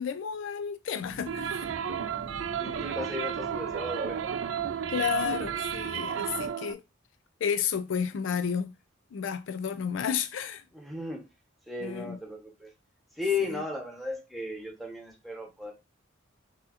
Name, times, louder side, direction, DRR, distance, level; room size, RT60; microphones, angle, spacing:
voice 1, 0.0-1.6 4.9-6.8 7.4-8.7 9.1-10.6 11.8-12.2 13.4-13.6, left 7 dB, 70° left, 0.4 m, -31 dB
sound 1, 1.0-6.5, right 1 dB, 45° left, 2.1 m, -46 dB
sound 2, 1.3-6.7, right 8 dB, 75° right, 0.3 m, -33 dB
voice 2, 2.5-4.3 10.7-11.3 11.7-12.7 13.2-15.7, left 3 dB, ahead, 1.0 m, -35 dB
6.3 x 2.8 x 2.5 m
head